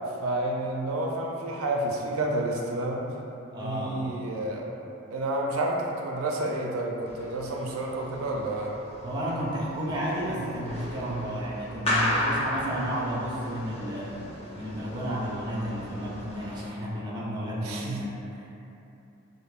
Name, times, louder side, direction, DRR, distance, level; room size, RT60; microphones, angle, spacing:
voice 1, 0.2-3.1 3.6-4.6 5.1-8.7 17.6-18.0, right 1 dB, 85° right, 0 dB, 0.4 m, -30 dB
voice 2, 3.5-4.0 9.0-14.2 14.5-18.5, equal, 20° right, -5 dB, 0.5 m, -32 dB
sound 1, 7.0-16.7, left 1 dB, 30° left, 0.5 m, -35 dB
5.3 x 2.0 x 2.4 m, 2.8 s
head